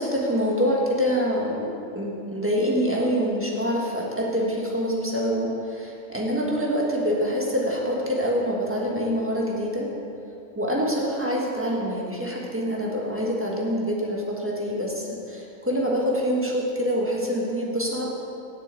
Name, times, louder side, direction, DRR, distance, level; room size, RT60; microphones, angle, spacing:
voice 1, 0.0-1.7 1.9-9.9 10.5-18.1, equal, 10° right, -3 dB, 1.5 m, -25 dB
7.6 x 6.9 x 8.2 m, 2.6 s
omnidirectional pair, 1.4 m